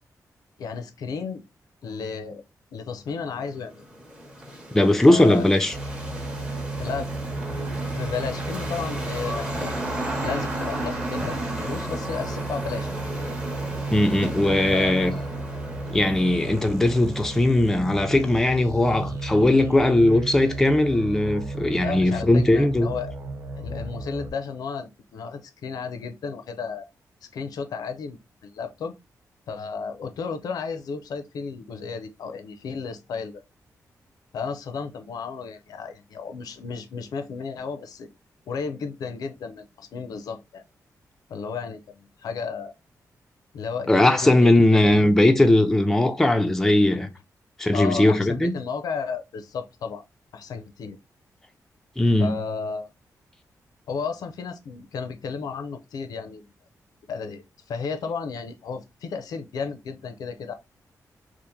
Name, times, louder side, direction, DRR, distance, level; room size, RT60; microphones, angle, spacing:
voice 1, 0.6-1.4 1.8-2.4 2.7-3.8 5.1-5.5 6.8-7.1 7.9-11.4 11.7-12.9 14.7-15.2 21.8-23.1 23.6-26.9 27.2-28.9 29.5-33.4 34.3-38.1 38.5-40.6 41.3-42.7 43.5-44.5 44.8-44.9 47.7-50.0 50.3-51.0 52.2-52.9 53.9-56.4 57.1-57.4 57.7-60.5, left 5 dB, 85° left, 0.5 m, -33 dB
sound 1, 3.4-17.9, right 1 dB, 15° right, 0.7 m, -34 dB
voice 2, 4.7-5.7 13.9-15.1 15.9-22.9 43.9-47.1 47.6-48.6 52.0-52.4, left 1 dB, 5° left, 0.4 m, -19 dB
sound 2, 5.7-24.3, right 2 dB, 50° right, 0.6 m, -34 dB
2.8 x 2.5 x 3.6 m
wide cardioid pair, 165°, 6 cm